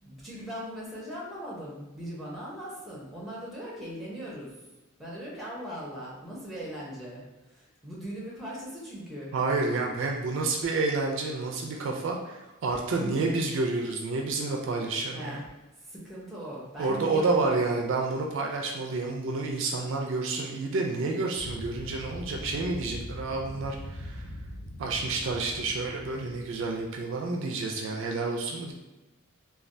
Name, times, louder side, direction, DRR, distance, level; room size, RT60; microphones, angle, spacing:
voice 1, 0.0-4.5 5.0-9.7 11.9-12.1 12.7-13.4 15.1-15.5 15.8-18.0 24.9-25.2 28.1-28.2, equal, ahead, -6 dB, 0.7 m, -40 dB
voice 2, 9.3-12.4 12.6-15.4 16.8-24.2 24.8-28.7, right 3 dB, 60° right, 1 dB, 0.3 m, -29 dB
sound 1, 21.4-27.2, left 1 dB, 60° left, 0.5 m, -41 dB
3.2 x 2.3 x 2.5 m, 1.1 s
head